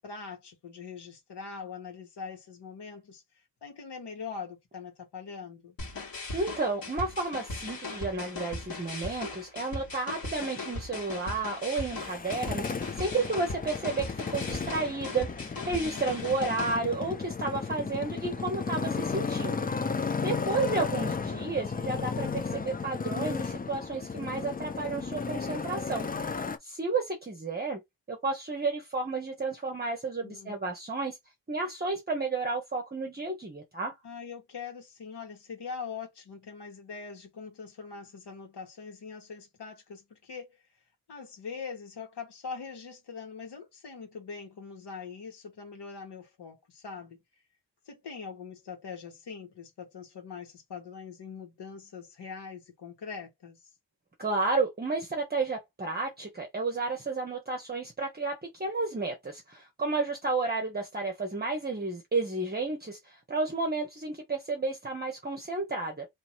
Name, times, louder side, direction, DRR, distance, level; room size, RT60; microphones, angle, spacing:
voice 1, 0.0-3.2 3.6-5.8 20.4-20.9 30.2-30.6 34.0-40.6 41.1-47.2 47.9-53.7, left 5 dB, 70° left, 1.9 m, -42 dB
sound 1, 5.8-16.7, left 2 dB, 55° left, 2.2 m, -39 dB
voice 2, 6.3-19.7 20.2-26.1 26.6-27.8 28.1-31.2 31.5-33.9 54.2-66.1, right 3 dB, 20° right, 1.0 m, -32 dB
Motorcycle, 11.9-26.6, left 5 dB, 20° left, 0.4 m, -34 dB
3.2 x 3.0 x 4.4 m
wide cardioid pair, 155°, 42 cm